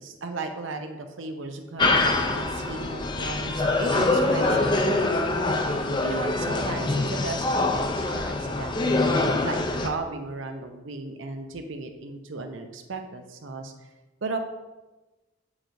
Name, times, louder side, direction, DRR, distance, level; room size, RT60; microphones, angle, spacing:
voice 1, 0.0-5.3 6.0-13.9 14.2-14.4, right 3 dB, 70° right, 6 dB, 0.6 m, -35 dB
sound 1, 1.8-9.9, left 2 dB, 25° left, 0.4 m, -24 dB
8.7 x 4.8 x 2.6 m, 1.1 s
head